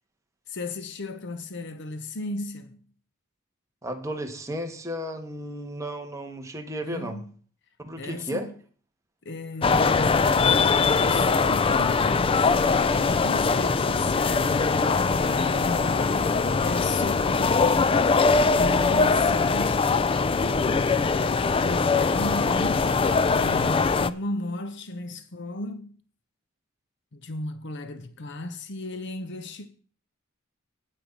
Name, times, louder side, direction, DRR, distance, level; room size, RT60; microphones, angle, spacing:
voice 1, 0.5-2.8 6.8-7.3 8.0-8.6 9.2-10.6 11.0-17.9 18.5-19.9 20.6-23.0 23.3-26.0 27.1-29.7, left 2 dB, 60° left, 0.8 m, -35 dB
voice 2, 3.8-7.2 7.8-8.5, equal, 15° right, 1.4 m, -34 dB
sound 1, 9.6-24.1, left 4 dB, 25° left, 0.4 m, -22 dB
sound 2, 11.3-18.0, left 1 dB, 40° left, 3.8 m, -51 dB
9.1 x 8.7 x 5.3 m
head